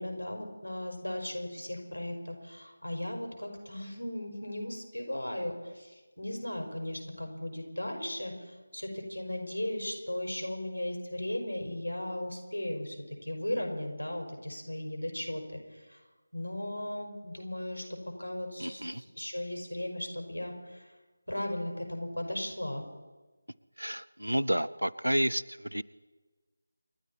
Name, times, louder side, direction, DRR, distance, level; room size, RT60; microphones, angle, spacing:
voice 1, 0.0-16.0 16.3-20.9 21.3-22.9, left 1 dB, 85° left, 2 dB, 4.9 m, -37 dB
voice 2, 18.6-19.0 23.8-25.8, equal, 85° right, 18 dB, 0.7 m, -30 dB
29.0 x 11.5 x 4.2 m, 1.3 s
figure-of-eight pair, 160°, 0 cm